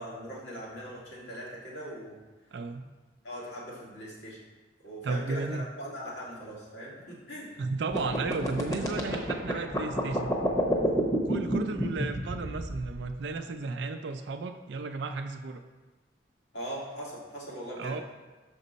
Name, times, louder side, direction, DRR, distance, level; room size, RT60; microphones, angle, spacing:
voice 1, 0.0-2.2 3.2-4.4 4.8-7.5 16.5-18.0, equal, 80° left, -5 dB, 2.0 m, -40 dB
voice 2, 2.5-2.9 5.0-5.6 7.6-10.4 11.3-15.6 17.8-18.0, right 3 dB, 70° right, 6 dB, 0.4 m, -34 dB
sound 1, 7.9-13.1, equal, 20° left, 0.9 m, -28 dB
6.4 x 5.2 x 4.0 m, 1.2 s
head